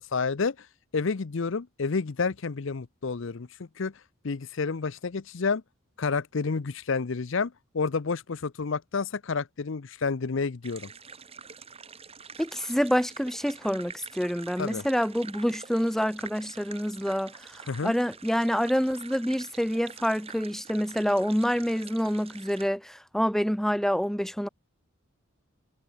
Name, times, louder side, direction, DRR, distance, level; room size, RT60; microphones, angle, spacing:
voice 1, 0.1-0.7 0.9-3.9 4.2-5.6 6.0-10.9 14.6-14.8 17.7-17.9, left 4 dB, 60° left, 0.6 m, -30 dB
sound 1, 10.6-22.7, right 5 dB, 30° right, 4.4 m, -46 dB
voice 2, 12.4-24.5, equal, ahead, 1.1 m, -27 dB
head